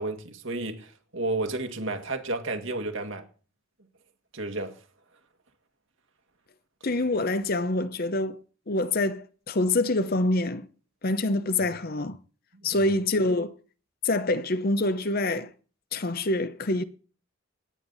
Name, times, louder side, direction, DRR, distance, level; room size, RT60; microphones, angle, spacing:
voice 1, 0.0-3.2 4.3-4.7 12.7-12.9, right 2 dB, 60° right, 1.9 m, -32 dB
voice 2, 6.8-8.4 8.7-10.7 11.0-12.2 12.6-13.5 14.0-15.5 15.9-16.8, left 2 dB, 45° left, 0.8 m, -26 dB
18.5 x 9.0 x 4.1 m
head